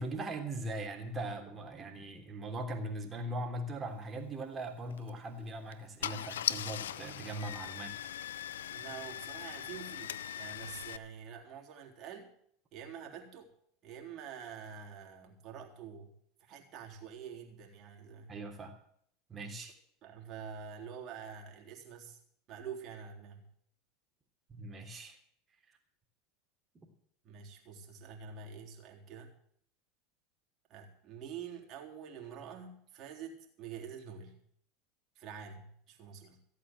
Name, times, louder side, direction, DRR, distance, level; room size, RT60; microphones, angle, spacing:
voice 1, 0.0-7.9 18.3-18.7 19.3-19.7 24.5-25.2, right 1 dB, 25° right, 3 dB, 3.3 m, -40 dB
Car / Engine starting, 4.9-5.1 5.7-5.8 6.0-11.0, left 10 dB, 85° left, 0.5 m, -39 dB
voice 2, 8.7-12.3 12.7-13.5 13.8-16.1 16.4-18.3 20.0-22.2 22.5-23.5 27.2-29.3 30.7-34.4 35.2-36.4, right 7 dB, 45° right, 0 dB, 3.6 m, -47 dB
15.5 x 8.3 x 7.7 m, 0.67 s
hypercardioid pair, 90°, 0 cm